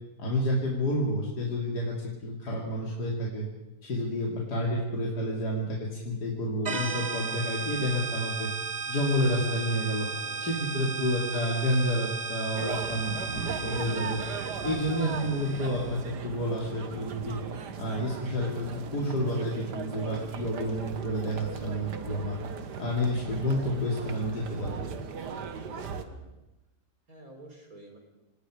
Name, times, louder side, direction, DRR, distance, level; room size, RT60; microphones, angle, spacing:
voice 1, 0.2-3.5 3.8-8.5 8.9-10.1 10.4-14.2 14.6-17.4 17.8-22.4 22.8-24.9, equal, 80° left, -3 dB, 3.6 m, -30 dB
sound 1, 6.7-16.0, right 4 dB, 30° right, 1.0 m, -35 dB
voice 2, 10.0-10.8 25.3-26.3 27.1-28.0, right 1 dB, 60° right, 2 dB, 4.5 m, -51 dB
sound 2, 12.6-26.0, right 6 dB, 85° right, 1.9 m, -38 dB
27.0 x 19.0 x 5.1 m, 1.0 s
omnidirectional pair, 1.7 m